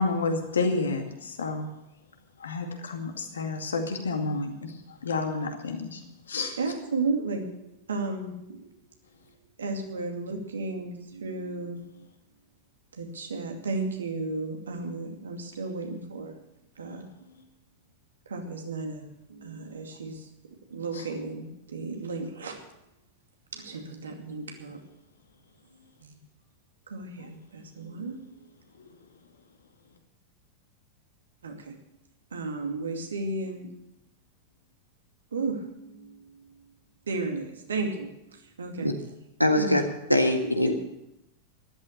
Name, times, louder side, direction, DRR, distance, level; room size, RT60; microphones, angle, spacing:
voice 1, 0.0-1.7 2.4-4.7 5.0-6.0 6.3-6.5, left 3 dB, 70° left, 4 dB, 2.3 m, -29 dB
voice 2, 6.6-8.7 9.6-12.0 12.9-16.3 16.8-17.4 18.3-20.3 20.7-22.6 23.5-24.8 26.0-26.1 26.9-28.2 31.4-31.7 32.3-33.7 35.3-36.5 37.1-39.1 39.5-39.7 40.6-40.7, right 3 dB, 70° right, 3 dB, 2.4 m, -34 dB
voice 3, 39.4-39.8 40.1-40.7, left 1 dB, 90° left, 5 dB, 1.6 m, -22 dB
13.5 x 12.0 x 6.7 m, 0.87 s
figure-of-eight pair, 90°, 0 cm